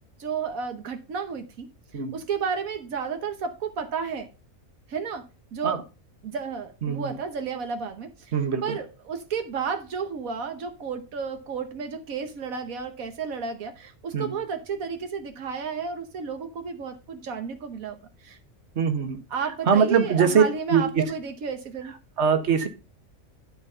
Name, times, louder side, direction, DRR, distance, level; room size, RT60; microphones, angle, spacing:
voice 1, 0.2-1.7 2.1-4.3 4.9-5.2 5.5-5.8 6.2-8.3 8.6-18.4 19.3-21.9, right 6 dB, 85° right, 1.5 m, -32 dB
voice 2, 6.8-7.2 8.3-8.8 14.1-14.4 18.7-19.2 19.7-20.4 20.7-21.0 22.2-22.7, right 6 dB, 55° right, 1.6 m, -22 dB
12.5 x 4.3 x 5.5 m
omnidirectional pair, 1.4 m